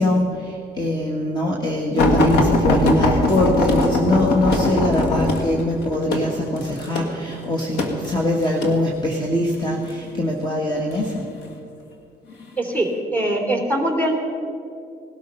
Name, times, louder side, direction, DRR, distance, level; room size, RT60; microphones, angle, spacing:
voice 1, 0.0-11.3, left 1 dB, 25° left, 0 dB, 1.8 m, -22 dB
sound 1, 2.0-8.8 9.5-10.0 10.9-11.6 12.3-12.5 12.9-13.0, left 2 dB, 80° left, 2.0 m, -20 dB
voice 2, 12.6-14.1, right 1 dB, 10° left, 1 dB, 2.8 m, -22 dB
18.5 x 12.5 x 5.6 m, 2.6 s
cardioid pair, 110°, 17 cm